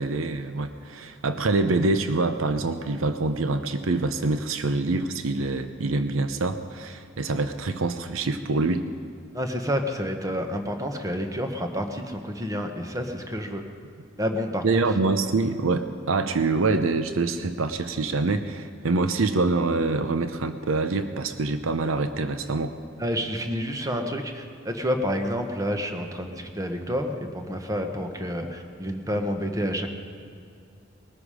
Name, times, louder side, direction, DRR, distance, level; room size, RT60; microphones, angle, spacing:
voice 1, 0.0-8.9 14.6-22.7, right 3 dB, 85° right, 9 dB, 0.7 m, -25 dB
voice 2, 9.3-13.6 14.2-14.8 23.0-29.9, equal, 15° right, 5 dB, 1.1 m, -29 dB
20.5 x 13.0 x 5.0 m, 2.4 s
head